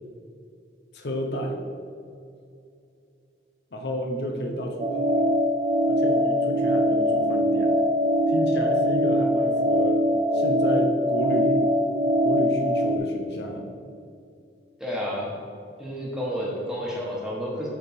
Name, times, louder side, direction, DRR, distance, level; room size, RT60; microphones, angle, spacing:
voice 1, 0.9-1.7 3.7-5.3 5.9-7.8 8.3-10.0 10.3-11.7 12.2-13.7, equal, 65° left, 2 dB, 0.7 m, -31 dB
sound 1, 4.8-13.0, equal, 35° right, 0.4 m, -22 dB
voice 2, 14.8-15.4 15.8-17.7, equal, 5° right, -5 dB, 1.3 m, -30 dB
9.1 x 3.5 x 4.4 m, 2.5 s
head